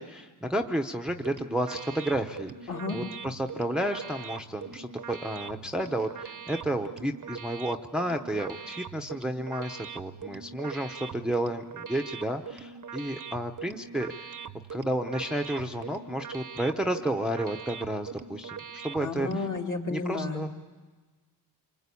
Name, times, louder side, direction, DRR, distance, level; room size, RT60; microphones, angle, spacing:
voice 1, 0.0-2.5 2.9-14.3 14.7-19.4 19.9-20.5, right 1 dB, ahead, 4 dB, 0.8 m, -31 dB
sound 1, 1.1-19.6, right 6 dB, 50° right, 0.8 m, -42 dB
voice 2, 2.7-3.0 19.0-20.5, left 3 dB, 45° left, 1 dB, 2.5 m, -32 dB
27.0 x 24.5 x 8.4 m, 1.3 s
wide cardioid pair, 150°, 41 cm